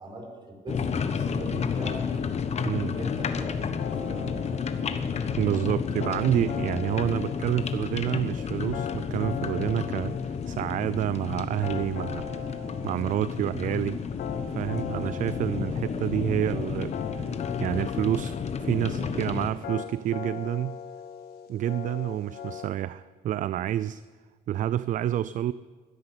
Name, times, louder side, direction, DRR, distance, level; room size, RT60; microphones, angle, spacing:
voice 1, 0.0-2.2 2.9-4.4 4.8-5.4 16.4-16.7 18.8-19.7, right 1 dB, 25° right, 1 dB, 5.0 m, -41 dB
sound 1, 0.7-19.5, left 6 dB, 40° left, 1.1 m, -31 dB
voice 2, 2.6-3.0 5.4-12.5 12.8-14.0 14.6-16.9 17.2-17.3 17.6-20.8 21.5-24.0 24.5-25.5, right 11 dB, 50° right, 17 dB, 0.4 m, -28 dB
sound 2, 3.8-22.7, left 8 dB, 65° left, 1.8 m, -40 dB
12.5 x 10.5 x 9.9 m, 1.5 s
cardioid pair, 110°, 17 cm